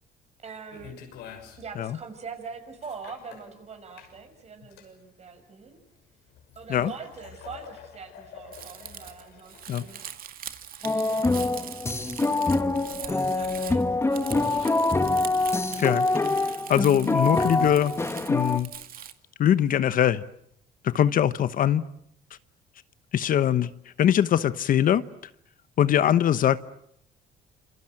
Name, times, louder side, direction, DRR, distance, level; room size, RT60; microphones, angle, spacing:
voice 1, 0.4-0.9 1.6-5.8 6.5-10.0 10.8-11.8 12.9-14.8, right 5 dB, 40° right, 7 dB, 6.6 m, -43 dB
sound 1, 0.7-10.1, left 8 dB, 85° left, 6.5 m, -48 dB
Crumpling crinkling, 8.5-19.1, right 10 dB, 60° right, 2.2 m, -42 dB
sound 2, 10.8-18.6, left 2 dB, 15° left, 1.6 m, -25 dB
voice 2, 16.7-17.9 18.3-18.7 19.4-20.2 20.8-21.8 23.1-23.7 24.0-25.0 25.8-26.6, left 10 dB, 55° left, 14 dB, 1.1 m, -22 dB
28.0 x 27.5 x 7.8 m, 0.71 s
cardioid pair, 110°, 17 cm